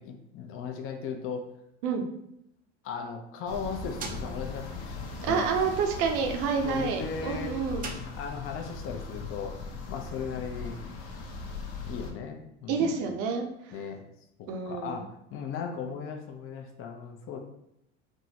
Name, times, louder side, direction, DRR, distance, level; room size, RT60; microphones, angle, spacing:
voice 1, 0.0-1.5 2.8-5.0 5.3-5.4 6.6-7.5 8.2-9.5 9.9-10.8 11.9-13.0 13.7-14.0 14.7-17.4, left 6 dB, 40° left, 3 dB, 0.5 m, -37 dB
sound 1, 3.5-12.1, left 4 dB, 70° left, 0.8 m, -39 dB
sound 2, 3.6-8.7, right 2 dB, 25° right, 0.4 m, -45 dB
voice 2, 5.2-7.8 12.7-13.7 14.5-15.0, right 5 dB, 65° right, 4 dB, 0.7 m, -28 dB
3.5 x 2.0 x 2.8 m, 0.78 s
supercardioid pair, 110°, 34 cm